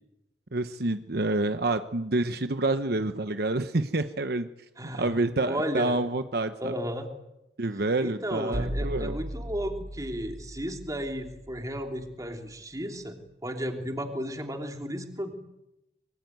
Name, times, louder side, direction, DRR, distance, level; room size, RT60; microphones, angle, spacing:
voice 1, 0.5-4.5 4.9-6.8 7.6-9.2, right 2 dB, 60° right, 9 dB, 1.0 m, -28 dB
voice 2, 4.8-5.2 5.4-6.0 6.6-7.1 8.0-13.2 13.4-15.3, equal, 20° right, 3 dB, 3.1 m, -34 dB
sound 1, 8.5-12.4, right 1 dB, 80° right, 5.3 m, -37 dB
25.5 x 23.0 x 9.4 m, 0.92 s
head